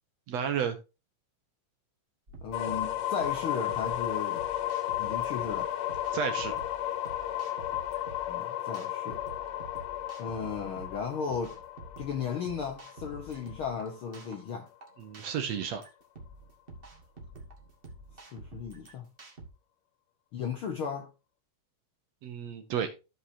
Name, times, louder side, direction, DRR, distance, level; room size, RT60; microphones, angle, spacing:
voice 1, 0.3-0.8 6.1-6.5 15.0-15.8 22.2-22.9, right 7 dB, 65° right, 2.0 m, -32 dB
sound 1, 2.3-19.5, right 2 dB, 35° right, 0.9 m, -49 dB
voice 2, 2.4-4.5 5.0-5.7 8.3-9.2 10.2-11.6 12.0-14.7 18.3-19.1 20.3-21.1, left 6 dB, 65° left, 1.3 m, -35 dB
sound 2, 2.5-14.3, left 13 dB, 90° left, 2.4 m, -34 dB
14.0 x 5.5 x 2.7 m
omnidirectional pair, 3.6 m